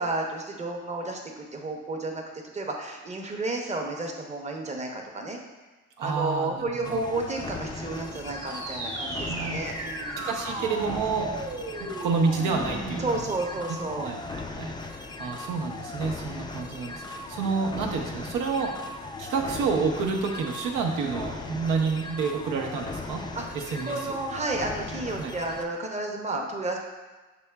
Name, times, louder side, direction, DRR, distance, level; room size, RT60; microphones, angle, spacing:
voice 1, 0.0-2.2 2.5-5.4 6.0-10.3 13.0-14.1 23.3-23.6 23.8-26.8, right 2 dB, 25° right, 2 dB, 0.7 m, -32 dB
voice 2, 6.0-7.0 9.3-9.6 10.2-11.3 11.8-13.2 13.7-23.2 23.5-24.0 25.2-25.3, right 4 dB, 90° right, 1 dB, 0.7 m, -29 dB
sound 1, 6.8-25.7, left 3 dB, 15° left, 0.3 m, -38 dB
sound 2, 8.3-13.3, right 2 dB, 45° right, 0.9 m, -36 dB
6.8 x 2.9 x 2.2 m, 1.2 s
cardioid pair, 90°, 30 cm